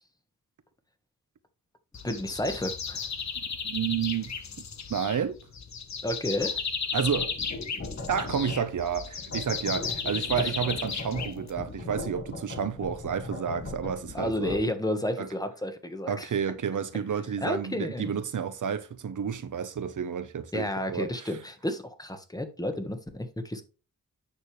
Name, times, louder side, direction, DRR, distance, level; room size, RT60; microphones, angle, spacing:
sound 1, 1.9-11.8, left 6 dB, 55° left, 1.2 m, -35 dB
voice 1, 2.0-3.1 6.0-6.6 10.4-10.5 14.1-16.3 17.4-18.0 20.5-23.6, left 1 dB, 10° left, 1.3 m, -31 dB
voice 2, 3.4-4.3 4.9-5.3 6.9-7.3 8.1-14.6 15.2-15.3 16.1-21.3, right 7 dB, 65° right, 1.0 m, -30 dB
sound 2, 7.0-8.7 9.2-14.6, left 2 dB, 35° left, 1.5 m, -39 dB
8.9 x 6.5 x 3.3 m
wide cardioid pair, 135°, 34 cm